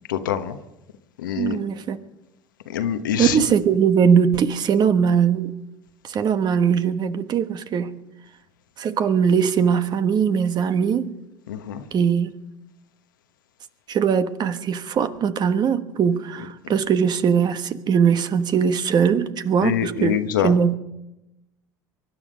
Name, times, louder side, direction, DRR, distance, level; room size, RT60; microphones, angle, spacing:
voice 1, 0.1-0.6 1.2-1.6 2.7-3.4 11.5-11.8 16.6-16.8 19.6-20.5, left 9 dB, 85° left, 1.2 m, -25 dB
voice 2, 1.4-2.0 3.2-5.5 6.0-8.0 8.8-11.1 11.9-12.4 13.9-20.7, right 7 dB, 45° right, 1.3 m, -20 dB
23.5 x 11.0 x 5.2 m
hypercardioid pair, 80°, 10 cm